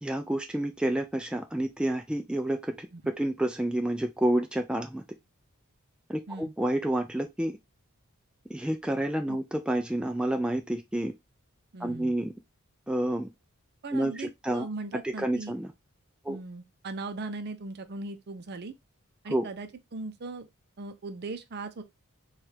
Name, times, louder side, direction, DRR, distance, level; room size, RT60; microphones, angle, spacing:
voice 1, 0.0-5.0 6.1-7.5 8.5-11.1 11.8-12.3 12.9-13.3 13.9-14.7 15.0-15.7 16.2-16.4 19.3-19.5, right 1 dB, 5° right, 0.3 m, -29 dB
voice 2, 11.7-12.1 13.8-15.5 16.3-18.7 19.2-20.5 20.8-21.8, right 3 dB, 50° right, 0.6 m, -39 dB
4.4 x 2.4 x 3.3 m
head